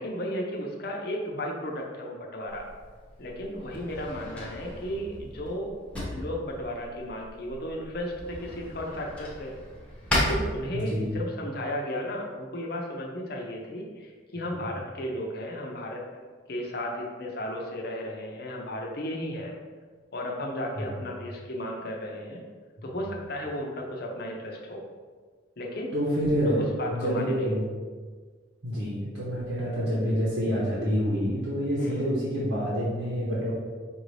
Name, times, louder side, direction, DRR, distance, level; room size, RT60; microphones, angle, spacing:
voice 1, 0.0-2.7 3.2-5.7 6.1-9.5 10.1-19.5 20.1-22.4 22.8-24.8 25.6-25.9 26.4-27.6 31.8-32.0, left 1 dB, 50° left, -1 dB, 0.6 m, -34 dB
Drawer open or close, 2.5-11.2, left 1 dB, 5° left, 0.8 m, -35 dB
voice 2, 10.7-11.1 20.8-20.9 25.9-26.6 26.9-27.6 28.6-33.5, equal, 70° right, -8 dB, 0.9 m, -27 dB
5.2 x 2.6 x 3.2 m, 1.5 s
head